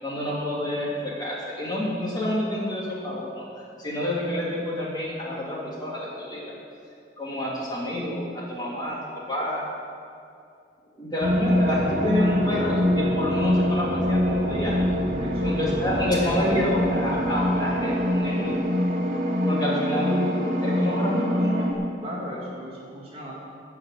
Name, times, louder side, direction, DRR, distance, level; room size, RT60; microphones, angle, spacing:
voice 1, 0.0-3.4 3.8-6.5 7.2-8.9 9.3-9.6 11.0-14.7 15.4-18.6 19.4-21.8, left 1 dB, 25° left, -6 dB, 3.0 m, -28 dB
sound 1, 11.2-21.7, equal, 50° right, 1.8 m, -24 dB
voice 2, 15.2-15.8 22.0-23.4, equal, 35° right, -4 dB, 2.2 m, -38 dB
13.0 x 6.1 x 8.7 m, 2.4 s
head